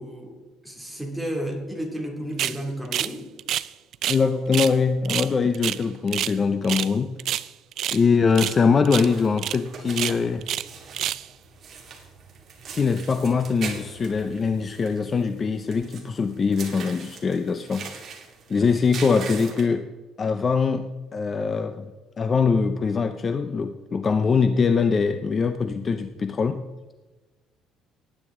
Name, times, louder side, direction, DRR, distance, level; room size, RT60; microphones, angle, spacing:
voice 1, 0.0-3.3, equal, ahead, 1 dB, 2.4 m, -32 dB
sound 1, 2.4-2.6 2.9-3.1 3.4-4.2 4.5-4.7 5.0-6.4 6.6-6.9 7.2-8.0 8.3-8.6 8.8-9.1 9.4-9.6 9.9-10.7 10.9-11.3, right 11 dB, 55° right, 0.5 m, -28 dB
voice 2, 4.1-7.1 7.9-10.4 12.7-17.9 18.5-19.9 20.2-21.9 22.2-26.6, left 5 dB, 30° left, 9 dB, 0.6 m, -22 dB
sound 2, 9.0-19.7, right 5 dB, 40° right, 2.4 m, -41 dB
19.0 x 9.7 x 3.7 m, 1.2 s
cardioid pair, 135°, 0 cm